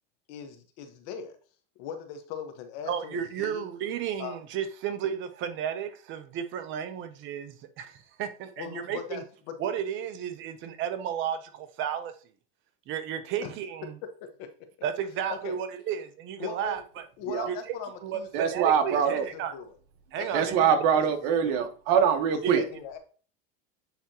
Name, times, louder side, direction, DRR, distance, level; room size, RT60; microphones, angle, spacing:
voice 1, 0.3-1.4 1.8-3.7 4.2-4.4 8.6-9.2 9.5-9.6 13.4-13.5 14.0-14.5 15.3-15.6 16.4-16.8 17.2-18.6 18.9-19.7 20.2-21.0 21.4-21.6 22.5-23.0, left 7 dB, 60° left, 1.3 m, -40 dB
voice 2, 2.9-9.2 9.6-12.1 12.9-14.0 14.8-17.0 17.5-17.6 18.0-19.5 20.1-20.6 22.4-22.6, right 8 dB, 40° right, 0.8 m, -33 dB
voice 3, 18.3-19.2 20.3-22.6, right 7 dB, 55° right, 1.2 m, -23 dB
9.0 x 3.5 x 2.9 m
supercardioid pair, 140°, 30 cm